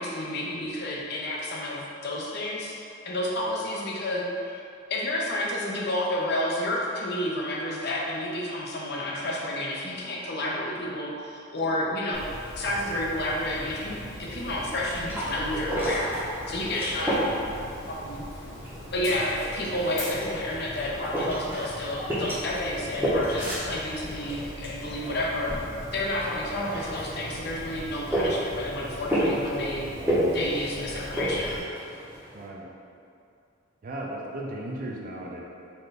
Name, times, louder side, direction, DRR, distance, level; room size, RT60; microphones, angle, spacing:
voice 1, 0.0-2.7 3.0-12.2 12.5-16.2 16.5-18.2 18.9-25.6 25.9-29.8 30.3-31.6, left 1 dB, 50° left, -4 dB, 0.6 m, -30 dB
Dog, 12.1-31.6, equal, 80° left, 1.4 m, -40 dB
sound 1, 14.6-32.4, equal, 10° right, 0.7 m, -32 dB
voice 2, 32.3-32.7 33.8-35.4, right 1 dB, 40° right, -2 dB, 0.4 m, -36 dB
4.2 x 2.5 x 3.2 m, 2.5 s
head